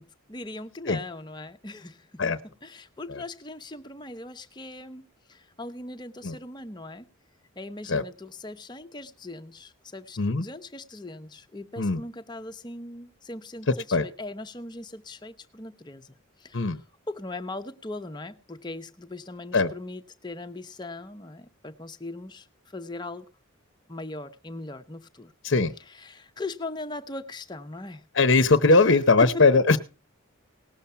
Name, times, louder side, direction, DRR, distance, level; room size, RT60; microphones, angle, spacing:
voice 1, 0.0-2.1 2.6-7.1 7.6-16.7 17.1-23.3 23.9-25.3 26.0-28.0 28.7-29.4, left 2 dB, 20° left, 0.7 m, -39 dB
voice 2, 28.1-29.8, left 3 dB, 55° left, 0.8 m, -20 dB
18.5 x 7.2 x 5.6 m
head